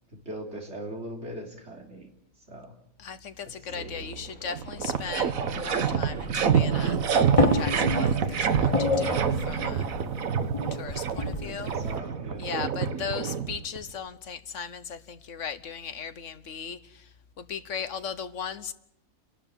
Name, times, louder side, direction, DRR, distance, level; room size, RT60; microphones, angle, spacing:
voice 1, 0.1-2.1 2.5-2.7 3.8-4.2 11.4-12.5, right 1 dB, 50° right, 3.9 m, -40 dB
voice 2, 3.0-7.0 7.4-9.9 10.7-11.8 12.4-17.1 17.4-18.7, left 7 dB, 65° left, 1.3 m, -37 dB
sound 1, 3.7-8.9, right 1 dB, 80° left, 3.7 m, -46 dB
sound 2, 4.1-4.2 4.5-13.9, right 7 dB, 75° right, 1.5 m, -27 dB
sound 3, 6.8-12.0, left 3 dB, 25° left, 1.4 m, -29 dB
29.0 x 12.0 x 9.0 m
omnidirectional pair, 1.4 m